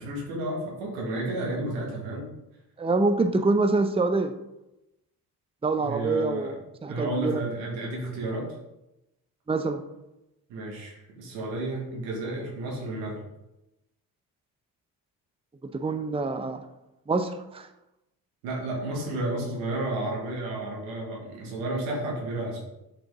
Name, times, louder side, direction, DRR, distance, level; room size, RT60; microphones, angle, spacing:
voice 1, 0.0-2.3 5.7-6.6 6.9-8.5 10.5-13.2 18.4-22.6, right 1 dB, 85° right, -2 dB, 2.0 m, -32 dB
voice 2, 2.8-4.3 5.6-7.4 9.5-9.8 15.6-16.6 17.1-17.7, right 3 dB, 15° right, 8 dB, 0.7 m, -26 dB
7.5 x 5.2 x 3.6 m, 0.91 s
hypercardioid pair, 50°, 45 cm